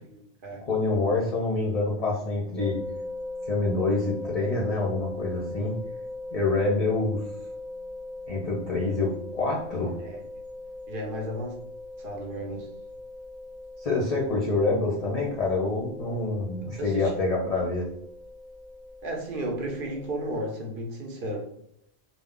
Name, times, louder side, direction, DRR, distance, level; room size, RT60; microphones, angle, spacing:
voice 1, 0.6-2.8 3.5-5.7 6.3-7.2 8.3-10.0 13.8-17.9, left 3 dB, 45° left, -4 dB, 0.6 m, -26 dB
sound 1, 2.5-20.4, left 2 dB, 10° right, 0.6 m, -40 dB
voice 2, 10.9-11.6 12.0-12.7 16.8-17.1 19.0-21.5, right 1 dB, 60° right, 1 dB, 0.7 m, -33 dB
2.2 x 2.1 x 3.6 m, 0.73 s
omnidirectional pair, 1.1 m